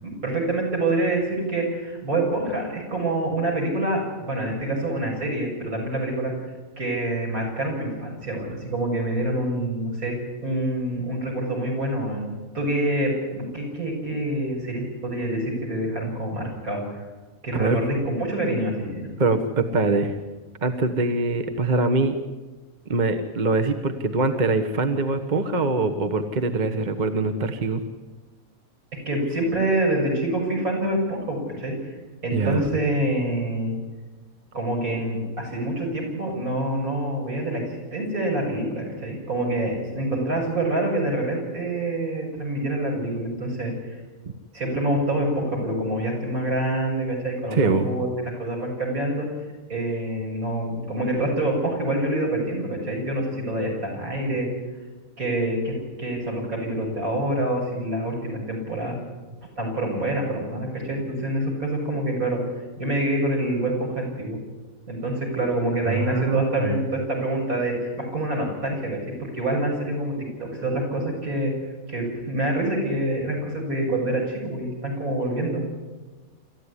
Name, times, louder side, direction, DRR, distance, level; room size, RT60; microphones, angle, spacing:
voice 1, 0.0-6.3 6.8-10.1 10.4-17.1 17.4-19.1 29.1-31.7 32.2-33.8 34.5-37.6 37.9-44.0 44.5-48.1 48.4-49.3 49.7-54.5 55.2-55.7 56.0-58.9 59.6-62.4 62.8-64.4 64.9-69.0 69.3-70.1 70.4-71.5 71.9-75.6, right 1 dB, 70° right, -1 dB, 7.3 m, -26 dB
voice 2, 19.2-20.2 20.6-22.2 22.9-27.8 32.3-32.6 47.5-47.9 65.9-66.8, right 3 dB, 35° right, 7 dB, 1.3 m, -23 dB
27.0 x 14.0 x 9.9 m, 1.3 s
omnidirectional pair, 1.5 m